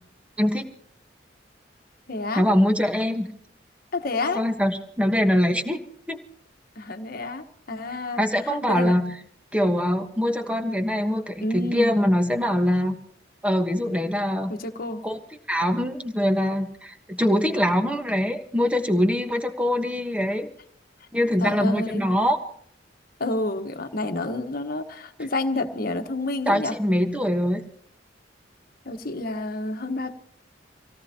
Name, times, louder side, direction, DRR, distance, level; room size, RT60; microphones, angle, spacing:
voice 1, 0.4-0.7 2.3-3.3 4.3-5.8 6.1-6.2 8.2-9.1 9.5-12.9 13.4-14.5 15.0-15.2 15.5-20.5 21.1-22.4 26.5-27.6, equal, 5° right, 5 dB, 1.3 m, -23 dB
voice 2, 2.1-2.4 3.9-4.5 6.8-9.0 11.4-12.0 14.5-15.0 21.4-22.1 23.2-26.8 28.8-30.1, left 2 dB, 55° left, 6 dB, 1.3 m, -29 dB
26.0 x 17.5 x 2.9 m, 0.62 s
head